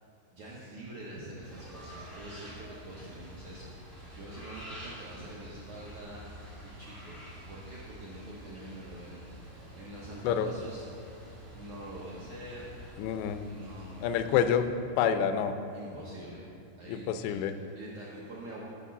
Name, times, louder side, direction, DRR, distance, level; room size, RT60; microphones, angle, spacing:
voice 1, 0.3-3.7 4.1-6.3 6.6-7.2 7.5-10.8 11.5-13.1 13.5-14.1 15.7-16.5 16.8-18.6, right 1 dB, 80° right, -6 dB, 1.7 m, -45 dB
sound 1, 1.4-14.6, equal, ahead, 0.4 m, -48 dB
voice 2, 13.0-13.5 14.0-14.7 15.0-15.6 16.9-17.6, left 8 dB, 90° left, 10 dB, 2.7 m, -27 dB
11.0 x 4.2 x 7.2 m, 2.6 s
omnidirectional pair, 4.8 m